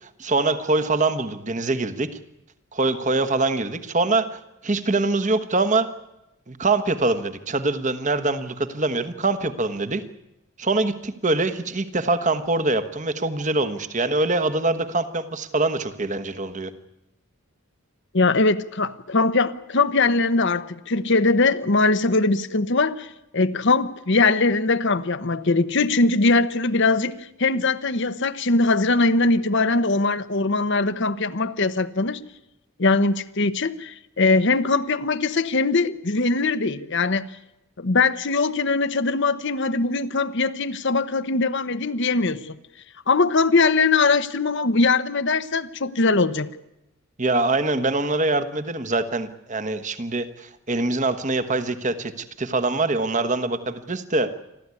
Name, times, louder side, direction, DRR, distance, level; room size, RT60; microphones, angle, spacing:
voice 1, 0.0-2.1 2.7-5.9 6.5-10.0 10.6-16.7 47.2-54.3, right 2 dB, 35° right, 1.3 m, -24 dB
voice 2, 18.1-32.2 32.8-37.3 37.8-42.6 43.1-46.5, left 3 dB, 55° left, 1.0 m, -21 dB
28.5 x 13.0 x 9.7 m
head